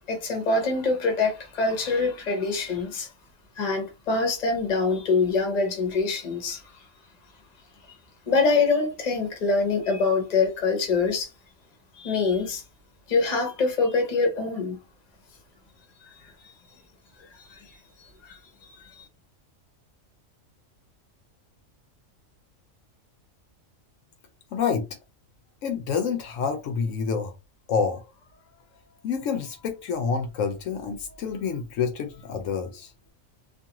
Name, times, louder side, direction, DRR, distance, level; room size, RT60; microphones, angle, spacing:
voice 1, 0.1-3.1 3.6-6.7 7.9-8.0 8.3-11.3 11.9-12.6 13.1-14.8 16.2-16.3 17.2-17.8 18.2-18.4 18.8-19.0, left 4 dB, 35° left, 0.8 m, -25 dB
voice 2, 24.5-24.9 25.6-27.3 27.7-28.0 29.0-32.9, left 6 dB, 75° left, 0.9 m, -28 dB
2.5 x 2.4 x 2.9 m
omnidirectional pair, 1.4 m